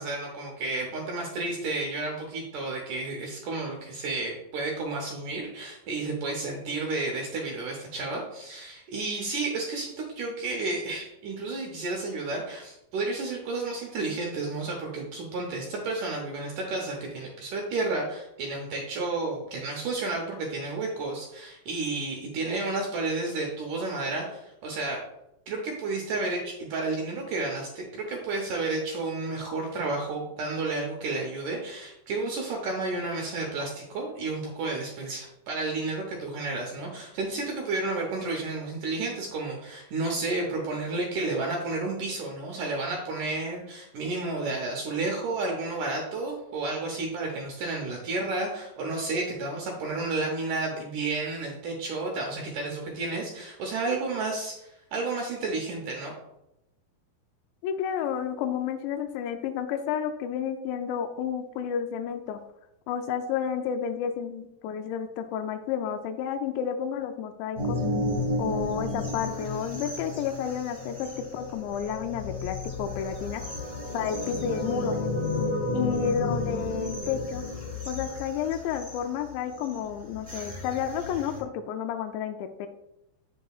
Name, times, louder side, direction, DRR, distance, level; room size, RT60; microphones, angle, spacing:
voice 1, 0.0-25.0 25.5-56.1, right 3 dB, 80° right, 0 dB, 1.8 m, -31 dB
voice 2, 57.6-62.4 62.9-67.8 68.4-73.4 73.9-75.0 75.7-77.4 77.9-82.7, left 8 dB, 90° left, 6 dB, 2.8 m, -31 dB
sound 1, 67.6-81.4, left 2 dB, 45° left, 0.4 m, -32 dB
8.1 x 7.5 x 2.4 m, 0.87 s
omnidirectional pair, 5.0 m